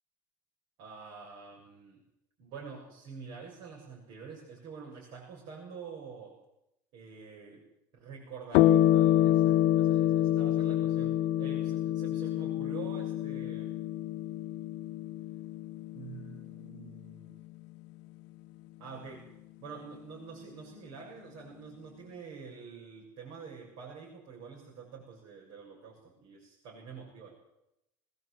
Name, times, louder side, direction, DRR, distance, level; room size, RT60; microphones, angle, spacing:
voice 1, 0.8-2.0 2.4-6.4 6.9-7.7 7.9-13.8 15.9-17.4 18.8-19.3 19.6-27.4, right 5 dB, 60° right, -2 dB, 7.0 m, -47 dB
sound 1, 8.5-17.4, left 13 dB, 75° left, 1.1 m, -27 dB
21.5 x 19.5 x 8.1 m, 0.86 s
cardioid pair, 135°, 9 cm